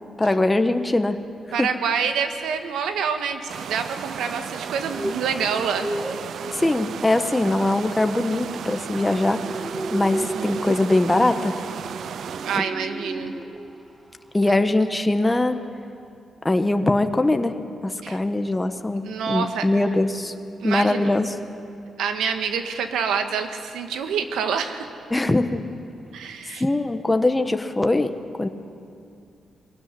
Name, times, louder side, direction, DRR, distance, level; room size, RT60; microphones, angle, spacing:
voice 1, 0.2-1.2 1.6-1.7 6.5-9.5 9.9-11.6 12.5-12.6 14.3-15.6 16.4-17.5 17.8-20.3 20.6-21.3 25.1-25.6 26.6-28.5, left 2 dB, 15° left, 7 dB, 1.3 m, -22 dB
voice 2, 1.5-5.9 10.2-10.7 12.4-13.3 18.0-18.2 19.0-19.6 20.6-21.1 22.0-24.9 26.1-26.6, right 6 dB, 85° right, 7 dB, 1.6 m, -27 dB
sound 1, 3.5-12.6, right 8 dB, 70° right, 0.5 m, -34 dB
sound 2, 4.7-13.9 14.2-14.5 14.8-14.9, right 1 dB, 15° right, 1.3 m, -35 dB
22.5 x 17.0 x 9.8 m, 2.6 s
cardioid pair, 70°, 0 cm